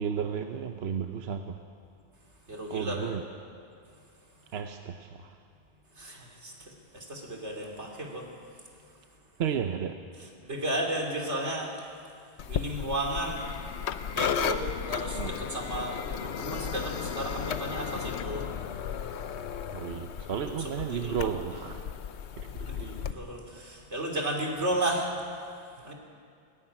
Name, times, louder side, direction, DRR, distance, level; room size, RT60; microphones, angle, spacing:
voice 1, 0.0-1.6 2.7-3.2 4.5-5.4 9.4-10.0 15.2-15.3 19.7-21.9 22.4-23.1, right 7 dB, 70° right, 6 dB, 1.0 m, -33 dB
voice 2, 2.5-3.1 6.0-8.3 10.4-11.8 12.5-13.5 14.1-18.5 20.4-21.3 22.6-25.1 25.8-25.9, right 1 dB, 85° right, 1 dB, 3.3 m, -34 dB
sound 1, 12.4-23.1, left 8 dB, 80° left, 1.0 m, -35 dB
18.0 x 15.0 x 9.8 m, 2.3 s
omnidirectional pair, 1.1 m